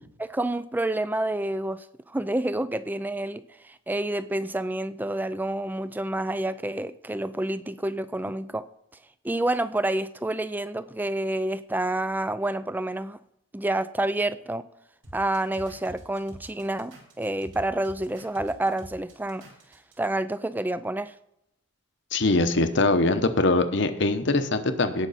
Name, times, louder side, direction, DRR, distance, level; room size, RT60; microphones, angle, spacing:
voice 1, 0.2-8.6 9.2-13.2 13.5-14.6 15.1-19.4 20.0-21.1, right 1 dB, 10° right, 14 dB, 0.3 m, -28 dB
sound 1, 15.0-19.9, equal, 65° right, 3.3 m, -46 dB
voice 2, 22.1-25.1, left 2 dB, 60° left, 9 dB, 0.9 m, -22 dB
17.5 x 6.0 x 4.1 m, 0.80 s
head